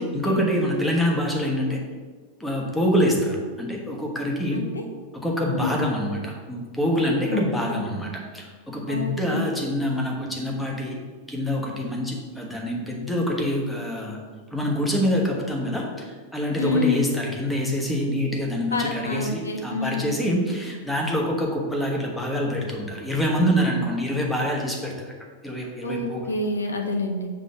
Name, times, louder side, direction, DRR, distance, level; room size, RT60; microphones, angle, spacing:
voice 1, 0.0-1.8 2.4-4.6 5.1-11.0 11.3-14.2 14.5-24.9 25.4-26.2, equal, 5° left, -1 dB, 1.1 m, -25 dB
voice 2, 4.5-4.8 5.5-5.9 7.3-7.8 8.9-9.5 16.6-17.0 18.7-20.2 25.8-27.3, left 3 dB, 75° left, 3 dB, 0.6 m, -28 dB
6.1 x 3.1 x 5.7 m, 1.5 s
figure-of-eight pair, 90°, 0 cm